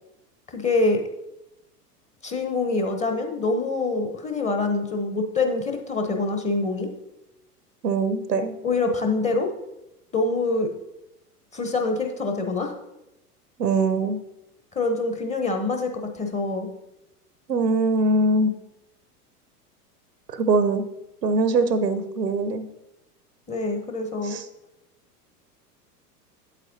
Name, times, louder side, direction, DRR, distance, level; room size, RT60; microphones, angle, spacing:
voice 1, 0.5-1.0 2.2-6.9 8.6-9.5 10.1-10.7 11.5-12.7 14.7-16.7 23.5-24.4, left 3 dB, 15° left, 4 dB, 0.8 m, -25 dB
voice 2, 7.8-8.6 13.6-14.2 17.5-18.5 20.3-20.8 21.2-22.7 24.2-24.4, right 3 dB, 85° right, 12 dB, 0.8 m, -22 dB
8.3 x 8.1 x 2.7 m, 0.91 s
figure-of-eight pair, 90°, 48 cm